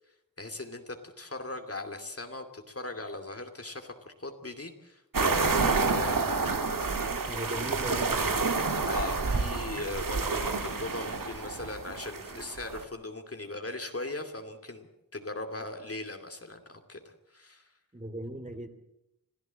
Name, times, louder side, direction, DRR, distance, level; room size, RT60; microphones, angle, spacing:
voice 1, 0.4-6.3 8.8-17.7, left 2 dB, 45° left, 5 dB, 2.6 m, -39 dB
sound 1, 5.1-12.8, right 4 dB, 75° right, 1.9 m, -29 dB
voice 2, 7.3-8.5 17.9-18.7, right 1 dB, 20° right, 7 dB, 2.8 m, -38 dB
26.5 x 16.0 x 7.5 m, 0.86 s
wide cardioid pair, 70°, 34 cm